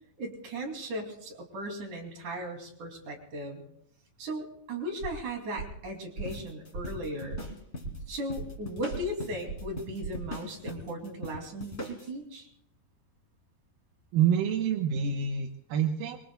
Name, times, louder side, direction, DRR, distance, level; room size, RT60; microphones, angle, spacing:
voice 1, 0.2-3.6 4.2-7.5 8.1-12.5, right 1 dB, 60° right, 2 dB, 4.2 m, -37 dB
sound 1, 5.0-5.3 5.6-5.8 6.2-6.4 6.7-7.0 7.3-7.6 7.8-8.6 8.9-9.2 9.5-9.8 10.0-10.3, right 5 dB, 40° right, 5.5 m, -39 dB
sound 2, 6.2-12.1, left 1 dB, 20° left, 2.6 m, -41 dB
voice 2, 14.1-16.2, right 8 dB, 85° right, 3 dB, 2.8 m, -27 dB
25.5 x 23.5 x 2.3 m, 0.72 s
omnidirectional pair, 4.0 m